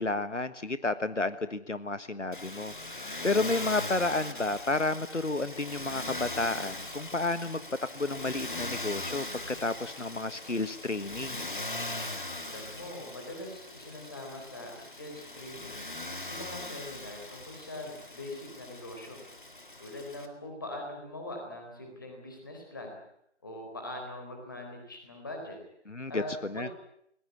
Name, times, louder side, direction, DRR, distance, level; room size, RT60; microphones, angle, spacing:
voice 1, 0.0-7.6 7.9-11.5 25.9-26.2 26.5-26.7, left 2 dB, 85° left, 13 dB, 1.5 m, -31 dB
Motor vehicle (road), 2.3-20.3, left 2 dB, 45° left, 2.4 m, -40 dB
voice 2, 12.5-19.2 19.8-23.0 23.4-25.6 26.1-26.7, left 1 dB, 20° left, 2 dB, 4.2 m, -42 dB
20.0 x 20.0 x 9.7 m, 0.73 s
figure-of-eight pair, 170°, 35 cm